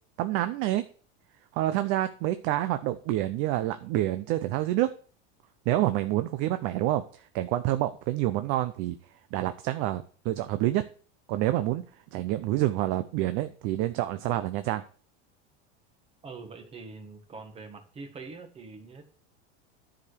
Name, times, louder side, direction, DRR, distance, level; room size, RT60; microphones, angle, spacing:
voice 1, 0.2-0.8 1.5-4.9 5.7-7.0 7.3-9.0 9.3-10.8 11.3-11.9 12.1-14.8, right 14 dB, 45° right, 10 dB, 0.6 m, -27 dB
voice 2, 16.2-19.1, right 4 dB, 20° right, 6 dB, 1.5 m, -44 dB
10.5 x 5.0 x 6.3 m, 0.41 s
supercardioid pair, 160°, 29 cm